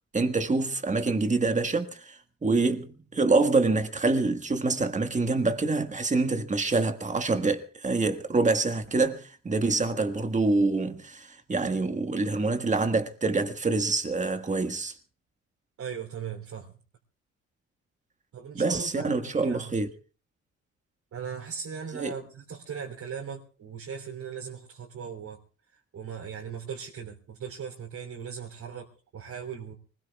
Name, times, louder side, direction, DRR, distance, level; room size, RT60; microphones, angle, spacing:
voice 1, 0.1-14.9 18.5-19.9 22.0-22.1, right 3 dB, 25° right, 1.7 m, -26 dB
voice 2, 15.8-16.7 18.3-19.7 21.1-25.4 25.9-29.7, right 7 dB, 65° right, 3.5 m, -38 dB
25.0 x 20.5 x 2.4 m
cardioid pair, 90°, 30 cm